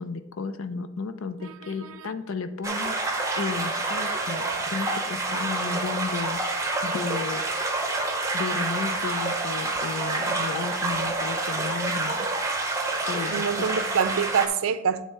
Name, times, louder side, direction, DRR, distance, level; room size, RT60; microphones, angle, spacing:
voice 1, 0.0-2.9 3.4-6.4 6.8-7.4 8.3-12.3 12.9-13.4, left 4 dB, 80° left, 0.6 m, -33 dB
voice 2, 1.4-2.1 13.3-15.0, right 7 dB, 90° right, 0.5 m, -26 dB
sound 1, 2.6-14.5, right 2 dB, 15° right, 0.7 m, -28 dB
9.0 x 3.3 x 4.8 m
head